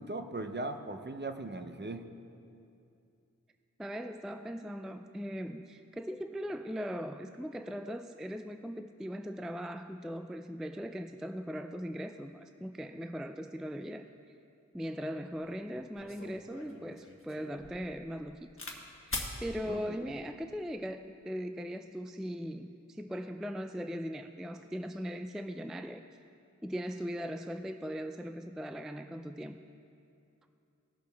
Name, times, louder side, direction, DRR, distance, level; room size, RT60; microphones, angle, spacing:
voice 1, 0.0-2.1 19.7-20.0, right 2 dB, 35° right, 7 dB, 0.7 m, -39 dB
voice 2, 3.8-14.1 14.7-18.5 19.0-26.0 26.6-29.6, equal, ahead, 8 dB, 0.3 m, -39 dB
sound 1, 15.4-15.5 16.0-18.8 19.1-19.4 20.2-20.6, left 2 dB, 45° left, 1.3 m, -42 dB
17.5 x 6.8 x 3.4 m, 2.6 s
wide cardioid pair, 50°, 30 cm